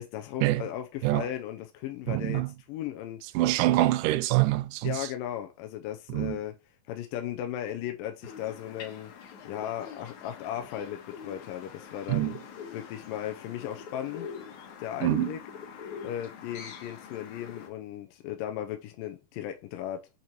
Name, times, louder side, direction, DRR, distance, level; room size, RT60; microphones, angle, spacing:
voice 1, 0.0-3.2 4.8-6.5 6.9-9.1 9.5-12.4 12.7-14.3 14.8-15.4 16.0-20.1, left 11 dB, 80° left, 2.3 m, -36 dB
voice 2, 2.1-2.5 3.4-5.0 6.1-6.4 12.1-12.4 15.0-15.4, right 17 dB, 80° right, 1.9 m, -25 dB
sound 1, 8.2-17.7, left 7 dB, 65° left, 2.3 m, -44 dB
8.6 x 3.0 x 4.4 m
omnidirectional pair, 4.0 m